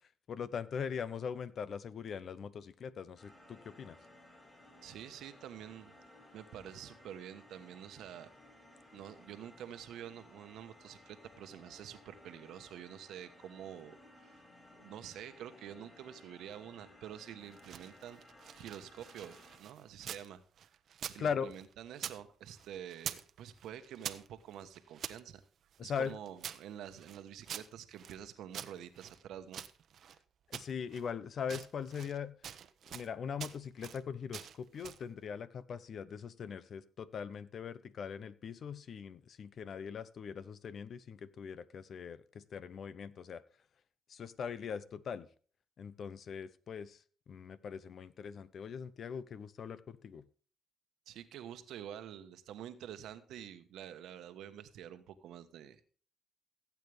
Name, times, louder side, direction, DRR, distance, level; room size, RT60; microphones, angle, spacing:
voice 1, 0.3-4.0 21.2-21.5 25.8-26.1 30.5-32.3 32.9-43.4 44.1-45.3 45.8-47.0 47.3-50.2, left 7 dB, 55° left, 0.8 m, -41 dB
sound 1, 3.2-19.6, left 1 dB, 20° left, 7.2 m, -59 dB
voice 2, 4.8-5.9 6.3-8.3 8.9-18.2 18.6-20.7 21.1-25.4 25.8-29.6 51.1-55.8, right 10 dB, 80° right, 1.2 m, -48 dB
sound 2, 17.4-20.3 20.6-22.2 22.5-23.3 23.6-25.2 25.7-28.2 28.5-30.2 30.5-31.1 31.4-32.2 32.4-33.1 33.4-34.0 34.3-35.1, right 9 dB, 65° right, 0.9 m, -46 dB
16.0 x 8.4 x 3.4 m
cardioid pair, 90°, 0 cm